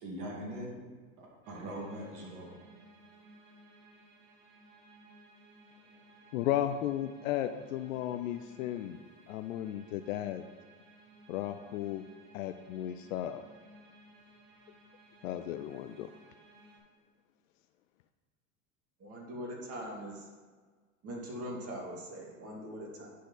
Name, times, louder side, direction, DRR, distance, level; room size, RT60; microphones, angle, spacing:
voice 1, 0.0-0.8 1.2-2.5, right 1 dB, 50° right, -2 dB, 2.2 m, -41 dB
sound 1, 1.4-16.8, right 1 dB, 75° right, 2.4 m, -58 dB
voice 2, 6.3-9.0 9.3-10.4 11.3-12.0 12.3-13.4 15.2-16.1, left 12 dB, 75° left, 8 dB, 0.5 m, -34 dB
voice 3, 19.0-20.3 21.0-23.1, equal, 35° right, -2 dB, 2.4 m, -41 dB
10.0 x 4.7 x 4.0 m, 1.5 s
hypercardioid pair, 95°, 40 cm